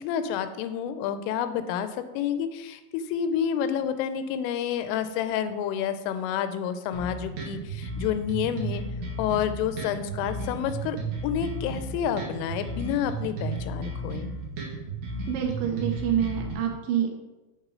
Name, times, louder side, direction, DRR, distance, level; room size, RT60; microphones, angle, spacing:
voice 1, 0.0-1.9 2.1-8.8 9.2-11.0 11.2-14.3, left 9 dB, 85° left, 10 dB, 3.1 m, -29 dB
sound 1, 6.9-16.5, right 2 dB, 60° right, 2.6 m, -33 dB
voice 2, 15.3-17.1, right 9 dB, 80° right, 3 dB, 2.8 m, -27 dB
7.6 x 6.4 x 3.7 m, 1.1 s
omnidirectional pair, 5.7 m